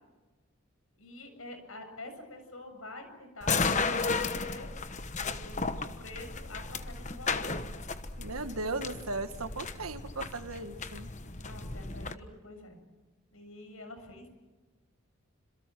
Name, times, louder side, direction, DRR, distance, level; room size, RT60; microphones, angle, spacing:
voice 1, 1.0-4.7 5.2-7.5 11.4-12.8 13.3-14.3, left 2 dB, 75° left, 6 dB, 7.2 m, -47 dB
sound 1, 3.4-12.1, left 4 dB, 35° left, 1.2 m, -34 dB
voice 2, 8.2-11.1, right 2 dB, 85° right, 9 dB, 1.8 m, -37 dB
28.0 x 27.0 x 6.2 m, 1.2 s
head